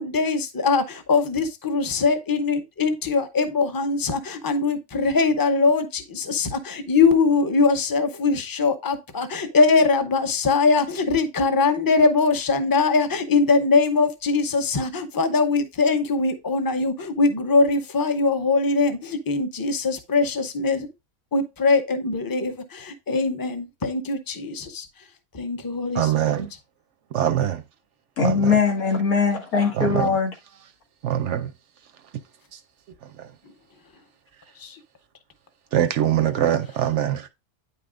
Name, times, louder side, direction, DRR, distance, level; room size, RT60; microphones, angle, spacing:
voice 1, 0.0-20.9 21.3-24.9 25.3-26.0 34.6-34.8, left 4 dB, 20° left, 0.6 m, -22 dB
voice 2, 26.0-26.4 27.1-27.6 28.2-28.6 29.8-30.1 31.0-31.5 33.2-33.3 35.7-37.3, right 11 dB, 65° right, 0.8 m, -23 dB
voice 3, 28.2-30.3, left 5 dB, 90° left, 2.3 m, -21 dB
9.1 x 5.5 x 2.5 m
omnidirectional pair, 1.5 m